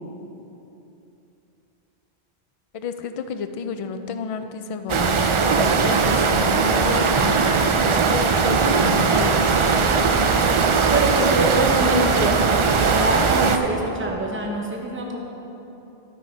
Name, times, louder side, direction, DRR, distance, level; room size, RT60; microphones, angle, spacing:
voice 1, 2.7-10.6, left 5 dB, 55° left, 9 dB, 0.3 m, -30 dB
sound 1, 4.9-13.6, right 5 dB, 55° right, 0.3 m, -19 dB
voice 2, 10.9-15.2, right 2 dB, 10° right, 0 dB, 0.9 m, -24 dB
13.0 x 5.6 x 4.4 m, 3.0 s
omnidirectional pair, 1.1 m